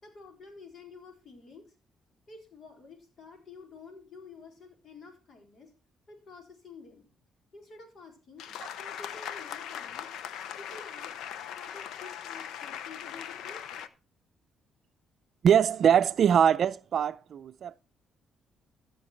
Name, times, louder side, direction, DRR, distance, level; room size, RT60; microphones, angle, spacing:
voice 1, 0.0-1.7 2.3-5.7 6.1-7.1 7.5-8.5 8.8-10.2 10.6-11.1 11.6-13.6, left 4 dB, 55° left, 4.2 m, -50 dB
sound 1, 8.4-13.9, left 9 dB, 80° left, 0.7 m, -40 dB
voice 2, 15.4-17.8, right 8 dB, 60° right, 0.5 m, -23 dB
14.0 x 6.6 x 4.5 m
cardioid pair, 90°, 0 cm